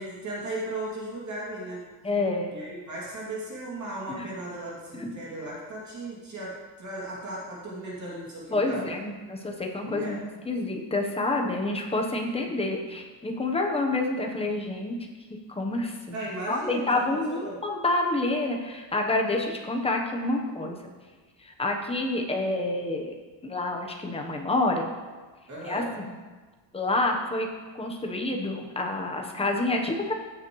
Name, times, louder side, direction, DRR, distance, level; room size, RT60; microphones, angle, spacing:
voice 1, 0.0-1.8 2.5-8.9 9.8-10.2 16.1-17.6 25.5-25.9, right 1 dB, 35° right, -5 dB, 2.5 m, -36 dB
voice 2, 2.0-2.5 4.1-4.3 5.0-5.1 8.5-10.2 10.4-15.0 15.3-16.2 16.5-20.8 21.4-23.1 23.4-24.9 25.6-26.1 26.7-27.5 27.8-30.1, left 2 dB, 10° left, 2 dB, 0.9 m, -28 dB
15.5 x 7.3 x 3.1 m, 1.3 s
cardioid pair, 175°, 48 cm